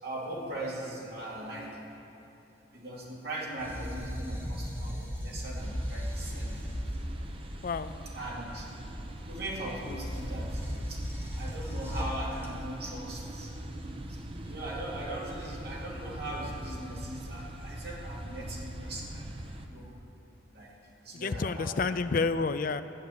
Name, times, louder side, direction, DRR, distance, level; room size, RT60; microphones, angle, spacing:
voice 1, 0.0-1.8 2.7-6.6 8.1-8.7 9.3-10.6 10.9-11.0 11.3-13.5 14.1-14.2 14.4-19.9 20.5-20.7 21.0-22.0, right 1 dB, 60° right, -4 dB, 2.5 m, -40 dB
sound 1, 3.6-7.7 9.8-12.8, equal, 15° right, 1.6 m, -36 dB
sound 2, 5.6-19.7, right 1 dB, 30° right, 0.8 m, -42 dB
voice 2, 7.6-7.9 21.1-22.8, left 4 dB, 50° left, 12 dB, 0.4 m, -29 dB
13.0 x 5.9 x 9.4 m, 2.9 s
head